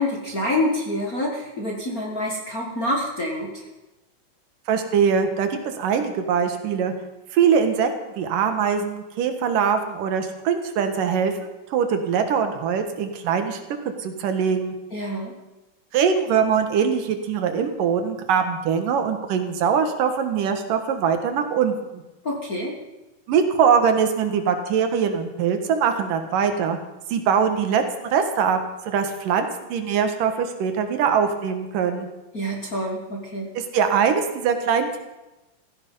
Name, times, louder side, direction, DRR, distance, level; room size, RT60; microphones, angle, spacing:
voice 1, 0.0-3.6 14.9-15.3 22.2-22.8 32.3-33.5, left 1 dB, 35° left, 0 dB, 1.5 m, -27 dB
voice 2, 4.7-6.9 7.3-11.3 11.7-13.6 13.8-14.7 15.9-22.0 23.3-26.8 27.1-32.1 33.6-35.0, right 7 dB, 80° right, 7 dB, 3.1 m, -22 dB
16.0 x 15.0 x 5.5 m, 1.0 s
omnidirectional pair, 3.8 m